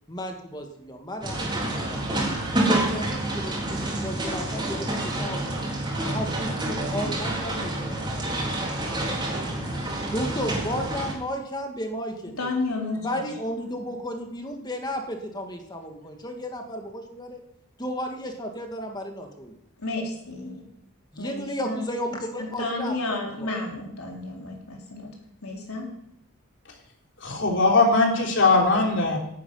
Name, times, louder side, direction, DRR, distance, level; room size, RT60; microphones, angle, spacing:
voice 1, 0.1-2.0 2.5-5.7 6.1-8.7 10.1-12.5 13.0-17.4 17.8-19.5 21.1-23.5, equal, 20° left, 3 dB, 2.2 m, -34 dB
sound 1, 1.2-11.1, right 1 dB, 20° right, 4.0 m, -28 dB
voice 2, 12.4-13.2 19.8-20.6 21.2-21.8 22.6-25.1 25.4-25.9, left 2 dB, 80° left, 0 dB, 3.7 m, -31 dB
voice 3, 27.2-29.2, left 3 dB, 55° left, 0 dB, 3.6 m, -20 dB
11.5 x 9.8 x 9.5 m, 0.78 s
head